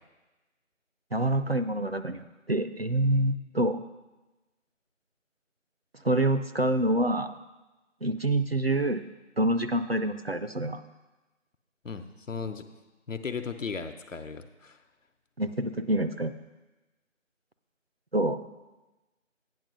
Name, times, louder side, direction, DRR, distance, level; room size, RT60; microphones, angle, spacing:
voice 1, 1.1-3.8 6.0-7.3 8.0-9.0 9.4-10.8 15.4-16.3 18.1-18.4, right 1 dB, 50° right, 9 dB, 0.4 m, -26 dB
voice 2, 11.8-12.7 13.1-14.8, left 5 dB, 75° left, 8 dB, 0.9 m, -36 dB
8.9 x 5.9 x 6.2 m, 1.1 s
figure-of-eight pair, 180°, 39 cm